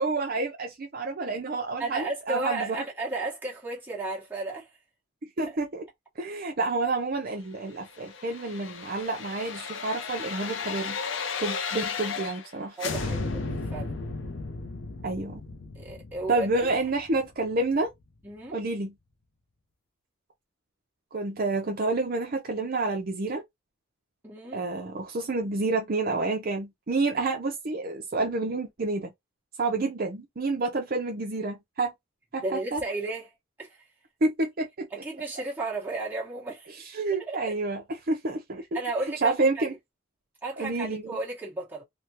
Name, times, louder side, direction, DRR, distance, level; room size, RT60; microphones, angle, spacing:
voice 1, 0.0-2.8 5.4-5.8 6.2-11.0 11.4-12.8 15.0-15.4 16.3-17.9 18.5-18.9 21.1-23.4 24.5-29.1 29.6-31.9 32.3-32.8 34.2-34.9 36.9-38.6 39.2-39.7 40.6-41.2, right 3 dB, 45° right, 0.6 m, -29 dB
voice 2, 1.8-4.8 5.4-5.6 12.8-14.0 15.7-16.7 18.2-18.6 24.2-24.6 32.4-33.8 34.9-36.8 37.2-37.5 38.7-39.8 40.4-41.8, right 2 dB, 10° right, 1.1 m, -34 dB
sound 1, 7.8-12.5 12.8-17.7 18.0-18.1, left 4 dB, 65° left, 0.5 m, -35 dB
3.3 x 2.2 x 2.8 m
head